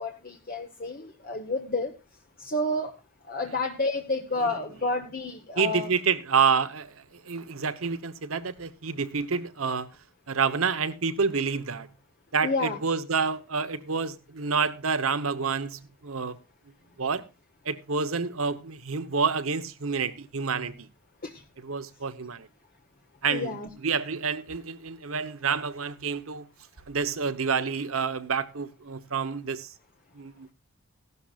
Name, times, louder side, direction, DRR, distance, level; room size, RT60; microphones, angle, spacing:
voice 1, 0.0-1.9 2.4-2.9 3.3-5.9 12.4-12.8 21.2-21.3 23.3-23.7, left 2 dB, 45° left, 1.2 m, -30 dB
voice 2, 5.6-9.9 10.3-11.9 12.3-16.4 17.0-17.2 17.6-20.9 21.6-22.5 23.2-26.5 26.9-29.7 30.1-30.5, right 5 dB, 85° right, 1.1 m, -28 dB
16.0 x 12.0 x 2.5 m
head